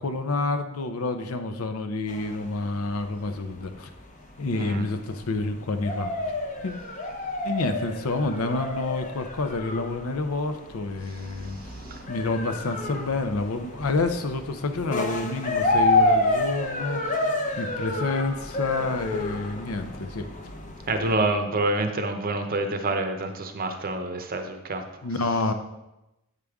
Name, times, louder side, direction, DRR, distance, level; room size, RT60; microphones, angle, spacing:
voice 1, 0.0-3.9 4.4-6.1 6.6-6.7 7.4-11.6 12.1-20.3 25.0-25.5, left 3 dB, 75° left, 7 dB, 0.7 m, -28 dB
sound 1, 2.1-21.1, left 2 dB, 35° left, 0.7 m, -29 dB
voice 2, 4.5-4.9 11.9-12.0 20.9-24.8, right 2 dB, 40° right, 6 dB, 0.7 m, -27 dB
8.2 x 5.0 x 3.5 m, 0.94 s
head